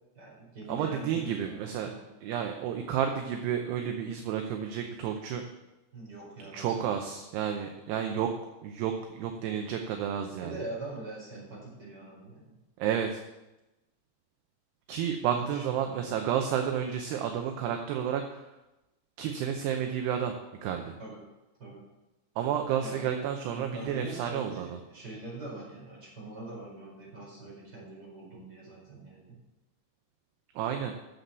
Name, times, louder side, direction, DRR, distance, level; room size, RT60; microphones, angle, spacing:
voice 1, 0.1-1.5 1.8-2.0 5.9-7.0 10.4-12.5 15.2-16.1 21.0-21.2 21.6-21.8 22.8-23.1 23.5-29.4, right 2 dB, 25° right, -4 dB, 4.8 m, -43 dB
voice 2, 0.7-1.9 2.2-5.4 6.5-8.3 8.6-10.5 12.8-13.2 14.9-18.5 19.2-20.3 20.6-20.9 22.4-24.8 30.6-30.9, right 8 dB, 75° right, 4 dB, 2.6 m, -31 dB
10.0 x 7.1 x 8.1 m, 1.0 s
omnidirectional pair, 5.3 m